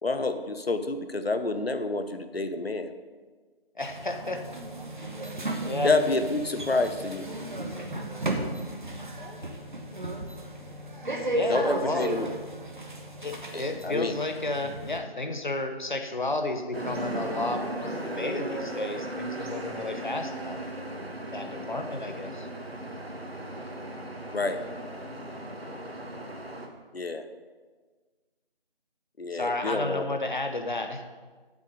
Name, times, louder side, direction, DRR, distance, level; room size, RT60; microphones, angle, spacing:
voice 1, 0.0-2.9 5.8-7.3 11.5-12.3 13.5-14.1 24.3-24.6 26.9-27.3 29.2-30.0, left 3 dB, 75° left, 9 dB, 1.0 m, -28 dB
voice 2, 3.8-4.4 5.6-5.9 11.3-12.1 13.2-20.6 21.2-22.5 29.3-31.0, left 2 dB, 50° left, 6 dB, 1.1 m, -32 dB
sound 1, 3.8-15.0, right 1 dB, 50° right, 1.2 m, -34 dB
sound 2, 16.7-26.7, right 1 dB, 80° right, 1.6 m, -36 dB
7.4 x 7.4 x 6.8 m, 1.4 s
figure-of-eight pair, 170°, 30 cm